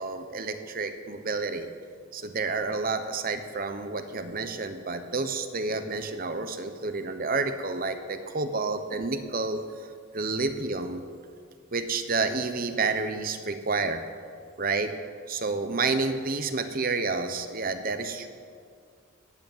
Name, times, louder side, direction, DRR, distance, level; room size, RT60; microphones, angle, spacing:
voice 1, 0.0-1.7 2.1-9.6 10.1-11.0 11.7-14.0 14.6-14.9 15.3-18.3, right 3 dB, 40° right, 8 dB, 0.9 m, -29 dB
18.0 x 8.4 x 7.4 m, 2.2 s
head